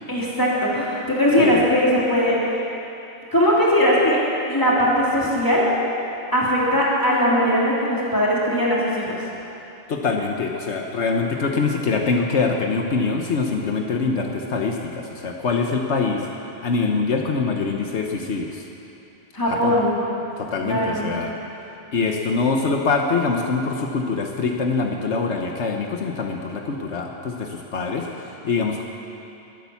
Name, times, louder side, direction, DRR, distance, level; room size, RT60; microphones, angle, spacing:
voice 1, 0.1-2.4 3.3-4.2 4.5-5.7 6.3-9.1 19.3-20.0 20.6-21.1, equal, 15° left, -6 dB, 3.1 m, -19 dB
voice 2, 9.9-16.3 16.6-18.6 19.5-19.8 20.4-21.3 21.9-28.8, left 4 dB, 75° left, 2 dB, 1.3 m, -24 dB
21.0 x 8.8 x 7.1 m, 2.9 s
omnidirectional pair, 1.2 m